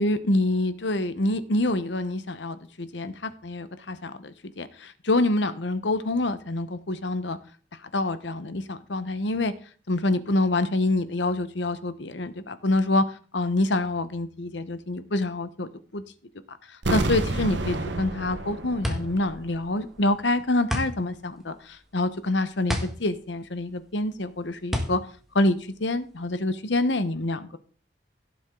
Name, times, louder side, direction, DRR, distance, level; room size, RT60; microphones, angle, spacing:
voice 1, 0.0-7.4 7.9-9.5 9.9-16.0 16.5-25.0 25.3-27.6, left 2 dB, 75° left, 12 dB, 1.0 m, -26 dB
sound 1, 16.8-19.7 20.0-20.1, right 2 dB, 75° right, 1.3 m, -30 dB
sound 2, 18.1-26.4, left 1 dB, ahead, 1.6 m, -33 dB
16.5 x 7.2 x 3.8 m, 0.41 s
head